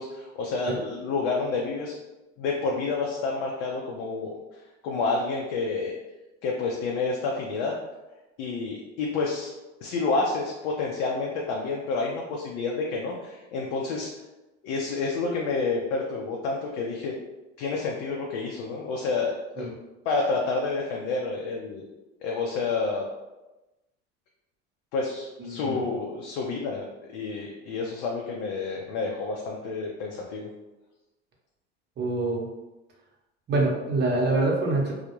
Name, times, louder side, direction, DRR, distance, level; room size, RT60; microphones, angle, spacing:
voice 1, 0.0-1.9 2.4-4.3 4.8-5.9 6.4-7.7 8.4-9.5 9.8-14.1 14.6-17.1 17.6-19.7 20.1-21.9 22.2-23.0 24.9-26.8 27.1-30.5, left 3 dB, 65° left, -1 dB, 0.5 m, -29 dB
voice 2, 25.4-25.8 32.0-32.4 33.5-34.9, right 2 dB, 30° right, -2 dB, 0.7 m, -25 dB
2.2 x 2.0 x 2.9 m, 1.0 s
hypercardioid pair, 80°, 36 cm